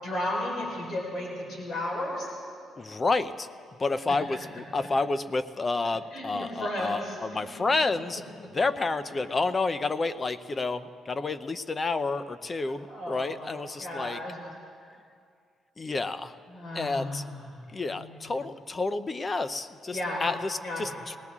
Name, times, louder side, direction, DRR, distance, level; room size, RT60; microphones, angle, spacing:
voice 1, 0.0-2.3 4.1-4.2 6.1-7.2 12.6-14.4 16.5-17.5 17.9-18.1 19.9-20.2 20.6-20.9, left 1 dB, 65° left, -3 dB, 4.5 m, -34 dB
voice 2, 2.8-3.5 3.8-8.2 8.5-14.2 15.8-16.3 16.7-17.2 17.7-21.1, left 3 dB, 30° left, 12 dB, 0.7 m, -30 dB
21.0 x 18.5 x 3.7 m, 2.2 s
cardioid pair, 90°, 0 cm